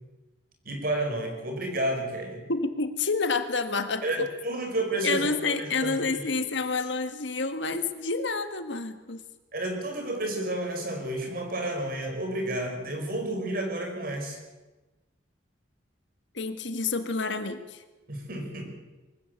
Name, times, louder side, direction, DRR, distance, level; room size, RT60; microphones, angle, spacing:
voice 1, 0.7-2.4 4.0-5.9 9.5-14.4 18.1-18.8, right 1 dB, 45° right, 3 dB, 5.2 m, -31 dB
voice 2, 2.5-4.3 5.0-9.2 16.3-17.8, left 4 dB, 65° left, 9 dB, 1.7 m, -29 dB
23.5 x 15.0 x 8.4 m, 1.2 s
head